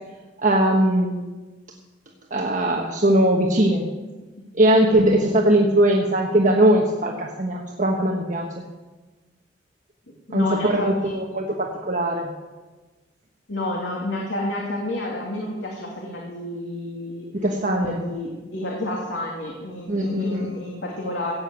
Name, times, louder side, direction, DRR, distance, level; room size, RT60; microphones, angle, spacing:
voice 1, 0.4-1.1 2.3-3.8 4.6-8.7 10.3-12.3 17.3-18.0 19.9-20.5, right 1 dB, 45° right, 0 dB, 1.3 m, -20 dB
voice 2, 10.3-10.9 13.5-17.3 17.7-21.3, left 1 dB, 85° left, -2 dB, 2.6 m, -30 dB
15.5 x 8.8 x 8.1 m, 1.2 s
head